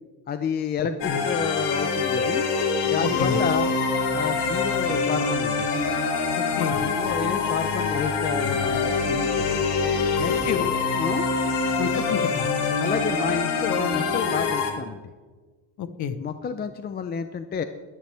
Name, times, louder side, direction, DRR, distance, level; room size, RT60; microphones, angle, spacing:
voice 1, 0.3-2.4 2.8-3.8 4.1-5.7 6.7-9.6 10.2-11.3 12.8-15.0 16.2-17.6, left 6 dB, 25° left, 9 dB, 0.5 m, -30 dB
sound 1, 1.0-14.7, left 4 dB, 80° left, 2.7 m, -25 dB
voice 2, 3.0-3.4 6.4-6.8 10.5-10.7 11.8-12.5 15.8-16.2, left 8 dB, 45° left, 11 dB, 1.1 m, -29 dB
21.5 x 10.5 x 3.4 m, 1.4 s
cardioid pair, 140°, 40 cm